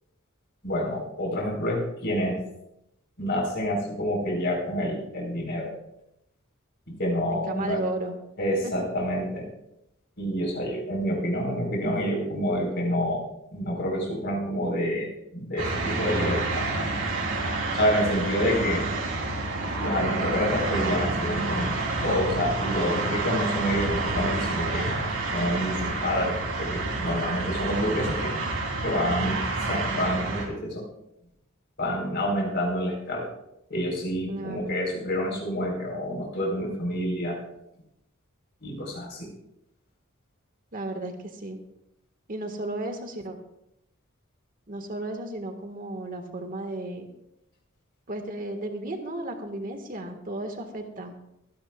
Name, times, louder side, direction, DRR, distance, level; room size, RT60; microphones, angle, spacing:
voice 1, 0.6-2.4 3.2-5.7 6.9-7.8 8.4-9.5 10.2-13.2 13.5-16.7 17.7-18.8 19.8-21.7 22.0-24.9 25.3-28.3 28.8-30.8 31.8-33.3 33.7-37.4 38.6-39.3, equal, 55° left, -1 dB, 4.2 m, -28 dB
voice 2, 7.3-8.1 8.6-8.7 34.3-34.7 40.7-41.6 42.3-43.4 44.7-47.1 48.1-51.1, right 2 dB, 40° right, 5 dB, 1.6 m, -34 dB
sound 1, 15.6-30.4, right 2 dB, 75° right, 3.2 m, -29 dB
24.5 x 10.5 x 2.4 m, 0.83 s
head